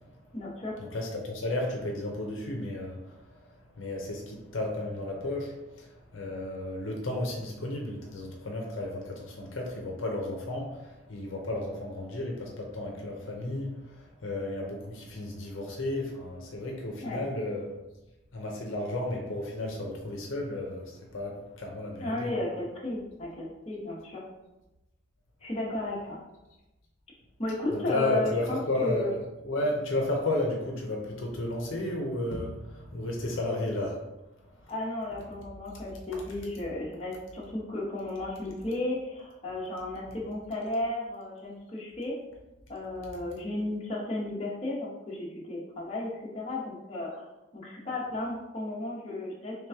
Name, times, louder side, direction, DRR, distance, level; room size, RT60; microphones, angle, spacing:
voice 1, 0.3-0.7 17.0-17.2 22.0-24.2 25.4-26.2 27.4-29.1 34.7-42.1 42.7-47.1 47.5-49.6, left 2 dB, 30° left, -6 dB, 0.9 m, -34 dB
voice 2, 0.9-3.0 3.8-5.9 6.1-13.7 14.2-17.7 18.3-20.9 21.1-22.3 27.7-29.2 29.4-34.0, left 1 dB, 75° left, 0 dB, 0.7 m, -33 dB
3.4 x 3.0 x 3.5 m, 1.0 s
head